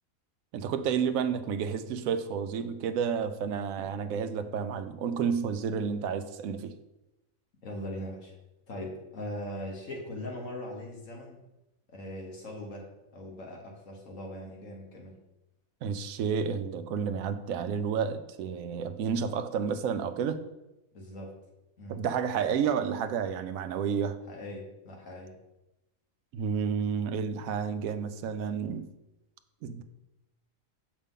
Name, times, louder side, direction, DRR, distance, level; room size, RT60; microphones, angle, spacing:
voice 1, 0.5-6.8 15.8-20.4 21.9-24.2 26.3-28.9 29.6-29.8, right 7 dB, 80° right, 10 dB, 1.0 m, -30 dB
voice 2, 7.6-8.3 8.7-11.4 11.9-12.9 13.1-15.2 20.9-21.3 21.8-21.9 24.3-25.3, left 1 dB, 70° left, 0 dB, 1.7 m, -40 dB
6.8 x 5.1 x 3.6 m, 0.94 s
omnidirectional pair, 1.4 m